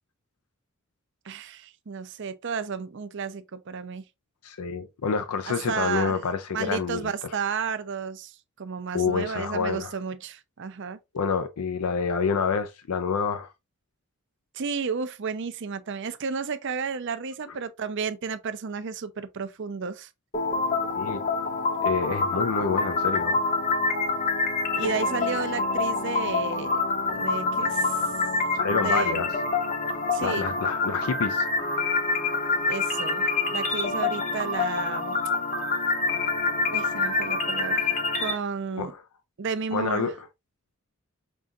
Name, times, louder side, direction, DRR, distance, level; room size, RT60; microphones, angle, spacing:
voice 1, 1.2-4.0 5.5-6.2 6.5-11.0 14.5-20.1 24.7-26.8 27.1-28.0 28.8-29.3 30.1-30.5 32.7-35.2 36.7-38.9 39.4-40.1, right 5 dB, 55° right, 0.5 m, -32 dB
voice 2, 4.4-7.1 8.9-9.9 11.1-13.5 20.9-21.2 21.8-23.4 28.5-29.3 30.2-31.5 35.8-36.0 38.8-39.0 39.7-40.3, left 5 dB, 85° left, 0.5 m, -28 dB
sound 1, 20.3-38.3, left 3 dB, 35° left, 0.8 m, -26 dB
5.4 x 3.7 x 2.4 m
head